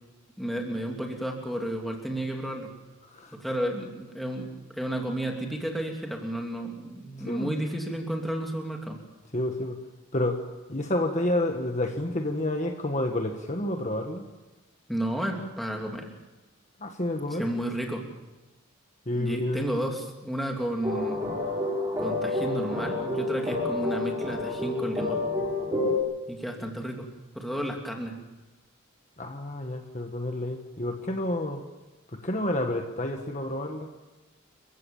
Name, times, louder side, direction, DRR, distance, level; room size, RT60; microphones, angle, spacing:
voice 1, 0.4-2.7 3.3-9.0 14.9-16.1 17.3-18.1 19.1-21.2 22.0-25.2 26.3-27.1 27.3-28.2, right 1 dB, ahead, 1 dB, 2.9 m, -32 dB
voice 2, 3.0-3.3 7.2-7.5 9.3-9.8 10.1-10.4 10.7-14.3 16.8-17.5 19.1-19.6 29.2-31.6 32.1-33.9, left 1 dB, 35° left, 4 dB, 1.5 m, -29 dB
sound 1, 20.8-26.0, left 2 dB, 15° right, 5.2 m, -29 dB
29.5 x 15.5 x 7.2 m, 1.2 s
head